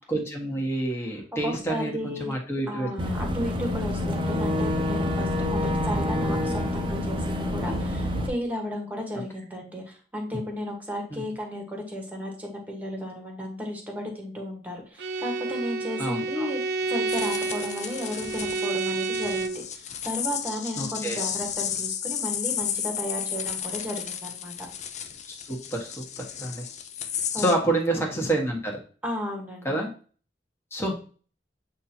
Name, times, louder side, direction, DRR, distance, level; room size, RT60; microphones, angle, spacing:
voice 1, 0.1-2.9 11.1-11.2 16.0-16.5 20.8-21.2 25.3-26.7 27.2-28.8 29.6-29.9 30.7-30.9, right 1 dB, 15° left, -1 dB, 1.5 m, -28 dB
voice 2, 1.4-2.3 2.7-16.6 16.9-24.5 27.3-27.5 29.0-29.7, left 1 dB, 10° right, 1 dB, 1.5 m, -34 dB
Boat Water vehicle / Engine, 3.0-8.3, left 1 dB, 30° right, 0.7 m, -27 dB
Bowed string instrument, 15.0-19.7, right 4 dB, 65° right, 0.5 m, -30 dB
sound 1, 17.1-27.5, left 8 dB, 40° left, 0.6 m, -33 dB
8.1 x 2.8 x 4.4 m, 0.40 s
head